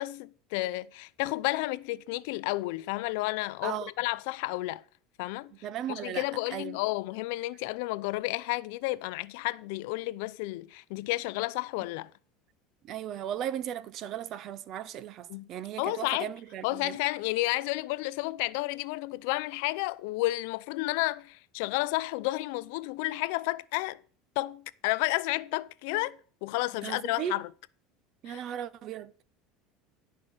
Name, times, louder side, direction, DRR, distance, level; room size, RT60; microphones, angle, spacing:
voice 1, 0.0-4.8 5.2-5.5 5.9-12.1 15.3-15.5 15.8-16.3 16.6-24.0 24.4-27.5 28.3-28.4, left 20 dB, 75° left, 0.5 m, -31 dB
voice 2, 5.6-6.3 6.5-6.8 12.8-17.0 26.8-27.4 28.2-29.1, right 10 dB, 45° right, 0.7 m, -36 dB
12.0 x 5.5 x 6.4 m
supercardioid pair, 130°, 0 cm